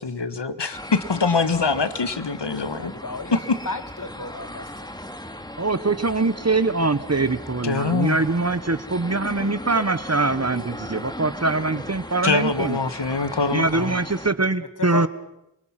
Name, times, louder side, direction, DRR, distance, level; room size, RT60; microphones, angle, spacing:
voice 1, 0.0-2.9 3.3-3.4 7.6-8.2 12.2-13.9, left 4 dB, 70° left, 11 dB, 1.7 m, -24 dB
sound 1, 0.7-14.3, left 1 dB, 10° left, 2.3 m, -37 dB
voice 2, 2.8-3.4 3.7-4.9 14.8-15.1, left 3 dB, 45° left, 9 dB, 2.2 m, -32 dB
voice 3, 5.6-12.8 13.5-15.1, right 3 dB, 35° right, 13 dB, 1.3 m, -23 dB
27.0 x 24.0 x 6.0 m, 0.85 s
wide cardioid pair, 45°, 44 cm